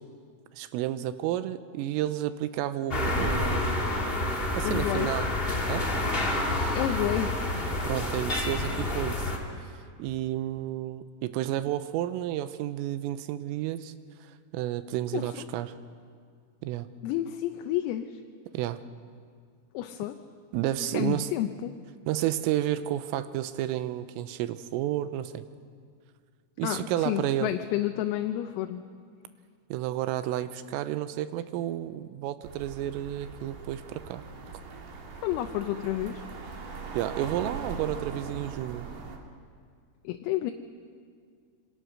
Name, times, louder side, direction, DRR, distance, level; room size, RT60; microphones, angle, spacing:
voice 1, 0.5-4.1 4.5-5.3 5.7-5.9 7.8-9.3 10.0-13.9 14.5-15.7 16.6-16.9 18.5-18.8 20.5-21.3 22.1-25.5 26.6-27.5 29.7-34.3 37.0-38.9, right 13 dB, 85° right, 11 dB, 3.4 m, -31 dB
sound 1, 2.9-9.4, left 2 dB, 30° left, 1.0 m, -28 dB
voice 2, 4.6-5.1 6.8-7.4 15.1-15.5 17.0-18.2 19.8-20.2 20.9-21.7 26.6-28.8 35.2-36.2 40.1-40.5, left 13 dB, 85° left, 5 dB, 3.6 m, -30 dB
sound 2, 32.4-39.2, right 4 dB, 55° right, 4.0 m, -41 dB
27.0 x 25.5 x 6.4 m, 2.1 s
omnidirectional pair, 6.0 m